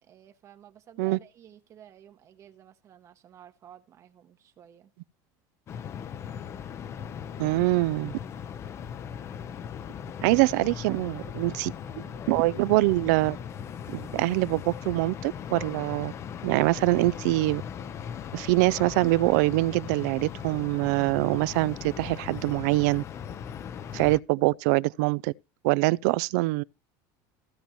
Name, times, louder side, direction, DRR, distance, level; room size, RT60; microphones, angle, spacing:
voice 1, 0.0-4.9 7.3-7.4 10.2-10.4 11.8-12.2, right 10 dB, 35° right, 0.9 m, -52 dB
sound 1, 5.7-24.2, left 8 dB, 30° left, 0.6 m, -38 dB
voice 2, 7.4-8.2 10.2-11.7 12.3-13.4 13.9-16.1 16.4-17.6 18.3-23.0 23.9-25.3 25.6-26.6, right 21 dB, 75° right, 0.4 m, -24 dB
16.0 x 6.9 x 3.0 m
cardioid pair, 155°, 10 cm